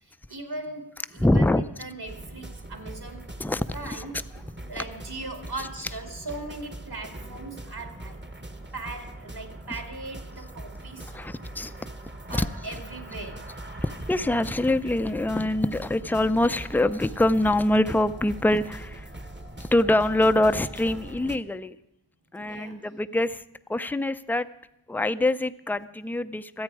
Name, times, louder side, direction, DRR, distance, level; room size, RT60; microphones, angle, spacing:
voice 1, 0.1-3.3 3.7-4.2 4.7-8.2 8.7-11.1 12.3-13.5 22.4-22.9, right 2 dB, 55° right, 5 dB, 2.6 m, -39 dB
voice 2, 1.1-1.6 3.4-4.1 5.6-5.7 11.1-11.7 12.3-12.5 13.8-19.1 19.6-21.8 22.3-23.4 23.7-24.5 24.9-26.6, left 1 dB, 5° left, 12 dB, 0.5 m, -24 dB
sound 1, 2.1-21.4, right 1 dB, 25° right, 1.2 m, -41 dB
26.0 x 8.8 x 4.8 m, 0.84 s
wide cardioid pair, 60°, 47 cm